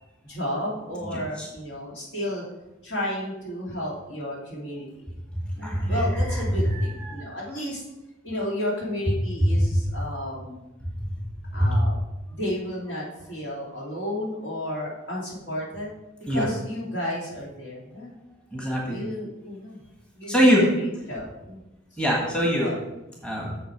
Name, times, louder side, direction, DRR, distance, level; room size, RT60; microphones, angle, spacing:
voice 1, 0.2-2.4 2.8-5.2 5.5-7.8 8.2-10.7 11.5-11.9 12.3-15.9 16.3-18.1 18.8-19.8 20.2-21.6 21.9-22.0 22.6-22.8, left 1 dB, 60° left, -5 dB, 2.9 m, -32 dB
voice 2, 5.6-6.2 6.7-7.3 11.6-11.8 16.3-16.5 18.5-19.0 20.3-20.6 22.0-22.7 23.2-23.5, equal, 5° left, -3 dB, 1.5 m, -23 dB
8.0 x 6.8 x 4.7 m, 0.98 s
head